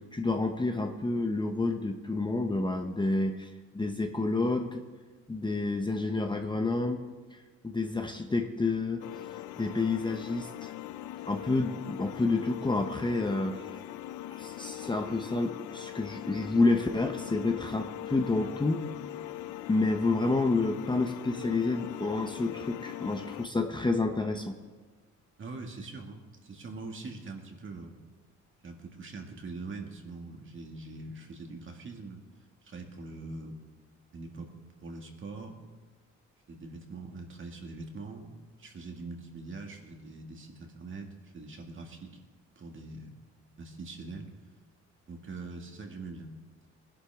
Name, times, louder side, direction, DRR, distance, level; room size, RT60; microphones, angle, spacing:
voice 1, 0.1-3.5 3.7-4.8 5.3-7.0 7.3-7.4 7.6-9.0 9.6-10.7 11.2-13.6 14.3-18.8 19.7-24.5, left 3 dB, 15° left, 4 dB, 0.9 m, -29 dB
sound 1, 9.0-23.5, left 13 dB, 85° left, 0.5 m, -41 dB
voice 2, 25.4-28.0 28.6-32.2 32.6-33.6 34.1-34.5 34.8-35.6 36.5-42.2 42.6-43.1 43.6-44.3 45.1-46.4, right 3 dB, 40° right, 2 dB, 2.1 m, -43 dB
19.5 x 11.5 x 3.6 m, 1.3 s
cardioid pair, 90°, 30 cm